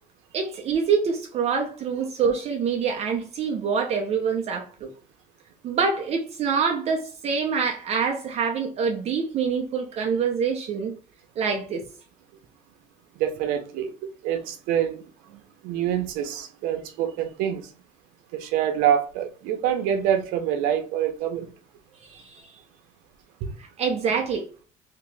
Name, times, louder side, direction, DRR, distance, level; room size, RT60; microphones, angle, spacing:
voice 1, 0.3-4.9 5.6-11.0 11.4-11.9 22.0-22.5 23.6-24.5, right 6 dB, 45° right, 0.6 m, -26 dB
voice 2, 13.2-13.9 14.2-15.0 15.3-17.6 18.3-21.5 23.4-23.5, right 9 dB, 90° right, 0.8 m, -26 dB
2.9 x 2.9 x 3.4 m
cardioid pair, 125°, 15 cm